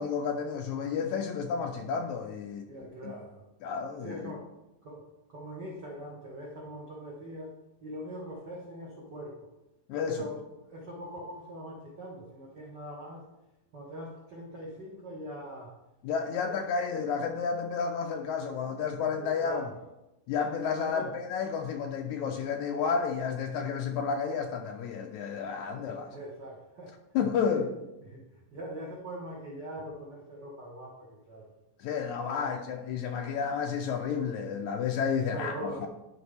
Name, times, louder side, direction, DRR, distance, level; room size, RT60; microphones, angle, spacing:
voice 1, 0.0-2.7 3.0-3.1 3.6-4.3 9.9-10.2 16.0-19.6 20.3-26.1 27.1-27.7 31.8-35.5 35.8-35.9, left 6 dB, 85° left, 3 dB, 1.7 m, -31 dB
voice 2, 2.7-3.4 4.0-4.5 4.8-5.0 5.3-7.5 7.8-9.5 10.0-13.3 13.7-15.7 16.4-16.6 19.1-19.7 20.7-21.1 25.7-26.9 27.5-27.7 28.0-31.5 32.3-32.5 35.1-35.9, equal, 70° right, -4 dB, 1.0 m, -42 dB
11.5 x 5.1 x 3.4 m, 0.93 s
omnidirectional pair, 3.9 m